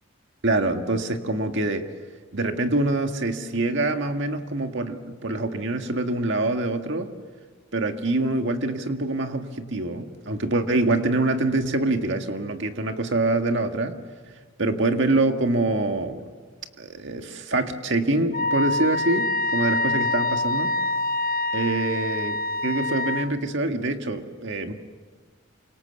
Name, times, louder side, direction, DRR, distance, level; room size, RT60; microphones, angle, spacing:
voice 1, 0.4-1.9 2.3-7.1 7.7-14.0 14.6-16.3 16.8-20.8 21.5-24.7, right 2 dB, 60° right, 5 dB, 1.9 m, -25 dB
Wind instrument woodwind instrument, 18.3-23.3, left 2 dB, 45° left, 0.9 m, -25 dB
28.5 x 25.5 x 7.1 m, 1.5 s
head